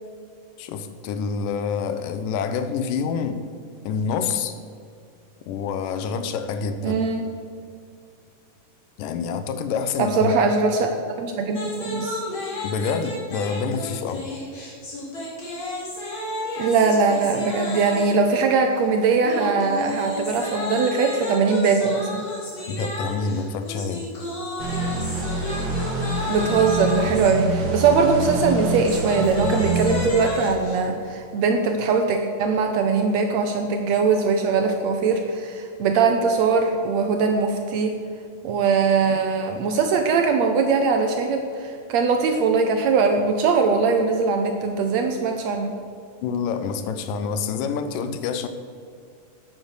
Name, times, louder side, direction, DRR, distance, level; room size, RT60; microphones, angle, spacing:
voice 1, 0.6-3.4 3.9-4.6 5.5-7.0 9.0-10.3 12.6-14.3 22.7-24.0 46.2-48.5, left 5 dB, 90° left, 9 dB, 2.4 m, -27 dB
voice 2, 6.8-7.2 10.0-12.2 16.6-22.3 26.3-37.9 38.4-45.7, right 4 dB, 75° right, 5 dB, 1.7 m, -21 dB
sound 1, 11.5-18.3 19.2-27.3 28.5-30.8, left 1 dB, 40° left, 3.1 m, -32 dB
sound 2, 24.6-30.1, right 2 dB, 50° right, 2.2 m, -26 dB
9.1 x 8.8 x 6.4 m, 2.3 s
omnidirectional pair, 3.7 m